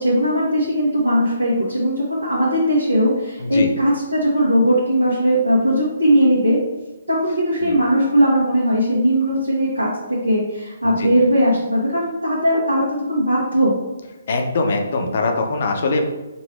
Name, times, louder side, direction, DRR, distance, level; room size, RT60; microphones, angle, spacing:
voice 1, 0.0-6.6 7.1-13.8, equal, 85° right, -6 dB, 1.2 m, -18 dB
voice 2, 14.3-16.0, left 3 dB, 50° left, 3 dB, 0.7 m, -22 dB
5.2 x 2.7 x 3.3 m, 1.1 s
figure-of-eight pair, 135°, 0 cm